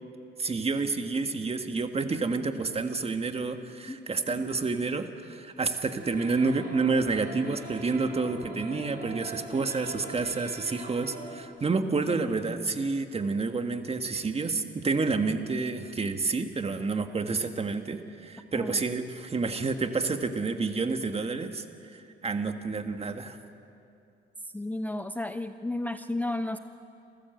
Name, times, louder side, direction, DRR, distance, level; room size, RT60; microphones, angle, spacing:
voice 1, 0.4-21.6 21.9-23.4, right 4 dB, 30° right, 7 dB, 1.6 m, -29 dB
sound 1, 6.0-11.5, right 2 dB, 50° right, 6.2 m, -42 dB
voice 2, 11.8-12.7 18.5-18.8 24.5-26.6, left 2 dB, 10° left, 10 dB, 0.6 m, -34 dB
27.5 x 14.5 x 7.9 m, 2.6 s
cardioid pair, 90°, 20 cm